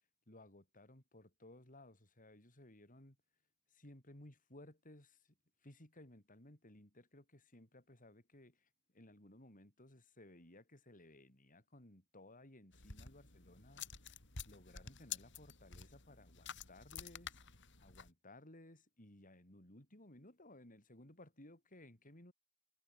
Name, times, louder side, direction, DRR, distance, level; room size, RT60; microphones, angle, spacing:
voice 1, 0.3-3.2 3.7-14.2 14.5-22.3, left 1 dB, 40° left, 5.7 m, -60 dB
sound 1, 12.7-18.1, left 7 dB, 60° left, 5.7 m, -50 dB
head